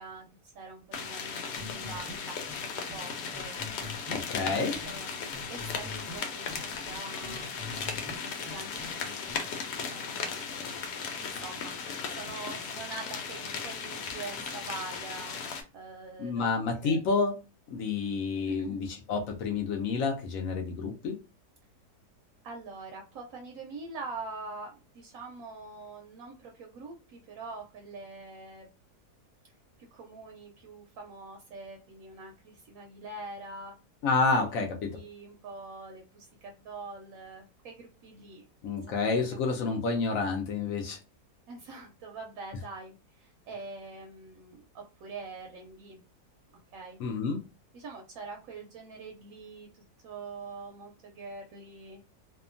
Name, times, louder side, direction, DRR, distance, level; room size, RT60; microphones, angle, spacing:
voice 1, 0.0-3.6 4.7-7.5 8.2-9.2 9.9-10.8 11.2-11.8 12.1-16.5 16.8-17.0 18.5-18.8 22.4-28.7 29.4-29.5 29.9-33.8 34.6-38.4 38.9-39.4 41.5-46.0 46.7-47.0 47.7-52.0, right 3 dB, 70° right, 2 dB, 0.9 m, -44 dB
sound 1, 0.9-15.6, left 5 dB, 85° left, 1.2 m, -37 dB
sound 2, 1.6-2.2 2.5-2.6 2.9-3.0 3.3-5.0 5.3-6.2 6.5-8.2 8.5-8.9 9.3-9.4, left 3 dB, 15° right, 0.7 m, -44 dB
voice 2, 4.1-4.8 16.2-17.4 17.7-21.2 34.0-35.0 38.6-41.0 47.0-47.4, left 4 dB, 70° left, 3 dB, 0.9 m, -29 dB
2.8 x 2.2 x 2.5 m, 0.30 s
omnidirectional pair, 1.7 m